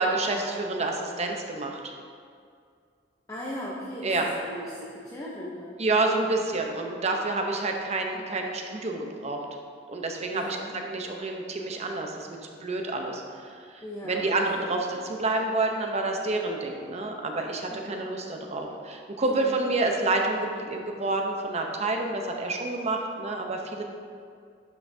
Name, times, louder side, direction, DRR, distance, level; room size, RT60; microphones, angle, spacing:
voice 1, 0.0-1.8 4.0-4.3 5.8-9.4 9.9-10.6 10.9-12.3 12.6-23.8, right 2 dB, 40° right, 2 dB, 0.7 m, -28 dB
voice 2, 3.3-5.8 8.1-8.3 10.3-10.8 13.8-14.7 17.7-18.0 19.2-19.6, equal, 20° left, -5 dB, 0.7 m, -38 dB
11.0 x 5.7 x 2.7 m, 2.2 s
head